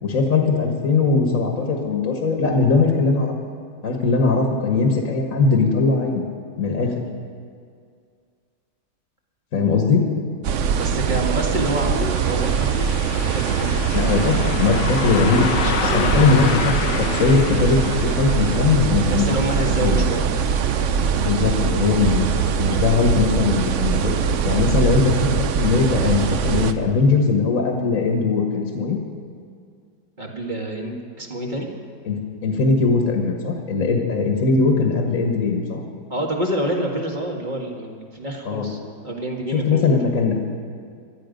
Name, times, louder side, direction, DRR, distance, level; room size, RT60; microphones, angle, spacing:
voice 1, 0.0-3.3 3.8-6.2 6.6-6.9 9.5-10.0 13.9-15.5 15.9-19.3 19.8-20.1 21.2-22.3 22.6-24.2 24.4-29.0 32.1-35.8 38.5-38.7 39.5-40.4, left 4 dB, 55° left, 2 dB, 1.8 m, -20 dB
sound 1, 10.4-26.7, right 7 dB, 60° right, 0.8 m, -22 dB
voice 2, 10.7-14.3 15.6-16.2 19.0-20.3 20.7-20.9 30.2-31.7 36.1-38.8 39.0-40.0, right 1 dB, 30° right, 0 dB, 1.8 m, -28 dB
Car passing by, 11.4-22.2 22.5-22.6 23.5-23.7 24.2-24.3 24.8-24.9, left 6 dB, 85° left, 1.6 m, -31 dB
19.0 x 12.5 x 5.2 m, 2.2 s
omnidirectional pair, 1.8 m